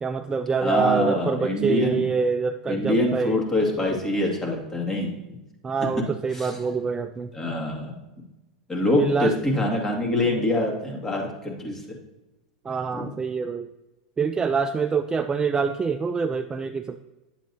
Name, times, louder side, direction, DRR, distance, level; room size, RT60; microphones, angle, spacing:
voice 1, 0.0-3.4 5.6-7.3 9.0-9.3 12.6-13.7 14.2-17.0, right 5 dB, 20° right, 8 dB, 0.3 m, -25 dB
voice 2, 0.6-2.0 2.7-5.1 6.3-6.6 7.3-8.0 8.7-12.0 12.9-13.1, left 1 dB, 15° left, -1 dB, 2.0 m, -25 dB
10.0 x 7.3 x 2.7 m, 1.0 s
hypercardioid pair, 100°, 4 cm